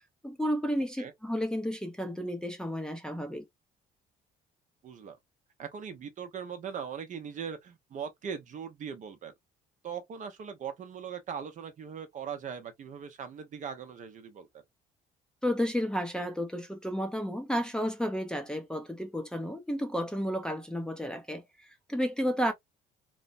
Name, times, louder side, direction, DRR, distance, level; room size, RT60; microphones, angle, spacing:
voice 1, 0.2-3.4 15.4-22.5, equal, 5° left, 0.6 m, -32 dB
voice 2, 4.8-5.2 5.6-9.3 9.8-14.5, right 7 dB, 50° right, 0.7 m, -40 dB
3.1 x 2.1 x 2.5 m
cardioid pair, 110°, 17 cm